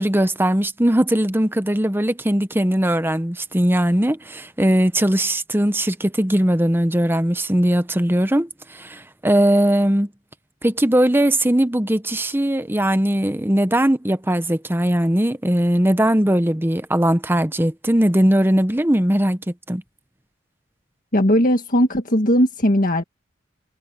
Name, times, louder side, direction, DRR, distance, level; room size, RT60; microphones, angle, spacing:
voice 1, 0.0-10.1 10.6-19.8, right 1 dB, 10° right, 1.0 m, -19 dB
voice 2, 21.1-23.0, equal, 45° left, 1.8 m, -18 dB
head